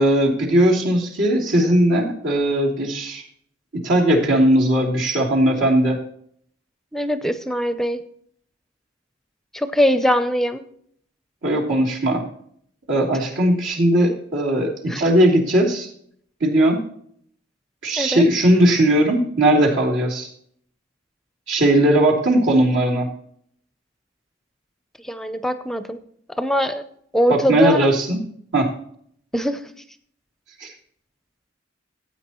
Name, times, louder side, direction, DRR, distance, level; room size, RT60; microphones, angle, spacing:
voice 1, 0.0-3.2 3.7-6.0 11.4-12.2 12.9-15.9 16.4-16.8 17.8-20.3 21.5-23.1 27.3-28.2 28.5-28.7 30.6-30.7, right 1 dB, 80° right, -2 dB, 3.1 m, -18 dB
voice 2, 6.9-8.0 9.5-10.6 14.9-15.0 18.0-18.2 25.0-26.0 26.4-26.8 27.1-27.9 29.3-29.6, equal, ahead, 10 dB, 0.5 m, -21 dB
15.5 x 8.7 x 3.0 m, 0.63 s
head